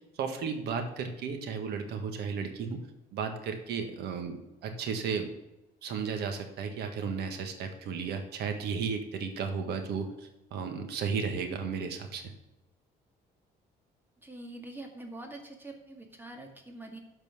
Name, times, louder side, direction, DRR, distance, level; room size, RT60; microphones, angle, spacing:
voice 1, 0.2-2.8 3.1-5.3 5.8-12.2, right 6 dB, 75° right, 6 dB, 1.6 m, -34 dB
voice 2, 14.2-17.0, right 2 dB, 10° right, 3 dB, 2.0 m, -44 dB
13.0 x 4.5 x 7.1 m, 0.99 s
cardioid pair, 110°, 17 cm